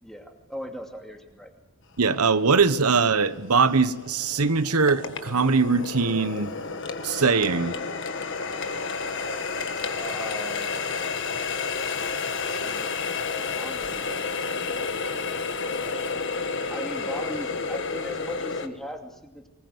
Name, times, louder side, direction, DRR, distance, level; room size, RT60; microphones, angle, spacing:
voice 1, 0.0-1.5 10.0-12.0 12.4-13.2 13.5-15.0 15.6-16.3 16.7-19.5, equal, ahead, 2.5 m, -40 dB
voice 2, 2.0-6.5 7.0-7.7, right 4 dB, 85° right, 1.1 m, -21 dB
Water tap faucet, 2.2-2.3 2.9-18.7, left 4 dB, 55° left, 1.7 m, -31 dB
24.5 x 20.0 x 8.0 m
head